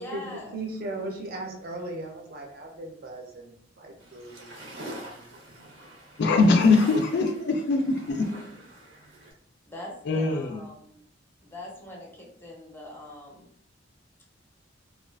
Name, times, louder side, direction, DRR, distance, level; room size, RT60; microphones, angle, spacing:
voice 1, 0.0-0.6 7.9-8.5 9.7-11.0 11.4-13.5, left 1 dB, 10° left, -2 dB, 0.5 m, -43 dB
voice 2, 0.5-5.6, right 2 dB, 50° right, 1 dB, 0.5 m, -38 dB
sound 1, 4.0-9.3, right 1 dB, 85° right, 0.8 m, -44 dB
voice 3, 6.2-8.3 10.1-10.6, left 3 dB, 60° left, 5 dB, 0.3 m, -22 dB
2.4 x 2.3 x 2.2 m, 0.66 s
head